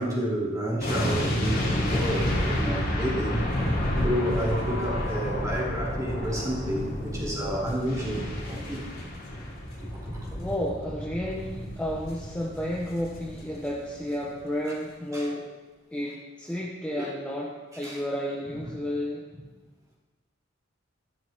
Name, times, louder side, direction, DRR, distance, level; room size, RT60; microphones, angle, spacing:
voice 1, 0.0-8.9 9.8-10.4 15.1-15.3 17.0-17.1 17.8-18.0, equal, 20° right, -7 dB, 3.2 m, -30 dB
sound 1, 0.8-14.0 14.2-14.4, left 1 dB, 50° left, 2.4 m, -30 dB
Keyboard (musical), 4.5-7.1, left 3 dB, 90° right, 1.5 m, -43 dB
voice 2, 10.3-15.5 15.9-19.2, equal, 5° left, -3 dB, 0.9 m, -32 dB
14.0 x 12.0 x 3.0 m, 1.3 s
head